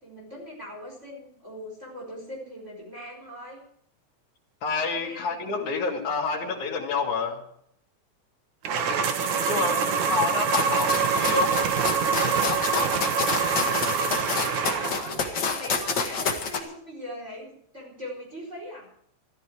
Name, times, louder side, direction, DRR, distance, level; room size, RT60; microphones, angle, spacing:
voice 1, 0.0-3.6 5.0-5.4 8.6-9.1 9.6-10.5 14.9-18.9, equal, 20° right, -2 dB, 4.9 m, -41 dB
voice 2, 4.6-7.4 9.4-11.6 12.1-13.5, left 4 dB, 80° left, -4 dB, 3.4 m, -29 dB
sound 1, 8.6-15.2, right 6 dB, 80° right, 2.8 m, -25 dB
sound 2, 10.5-16.6, left 4 dB, 40° left, 2.2 m, -29 dB
14.5 x 14.0 x 4.7 m, 0.67 s
omnidirectional pair, 3.3 m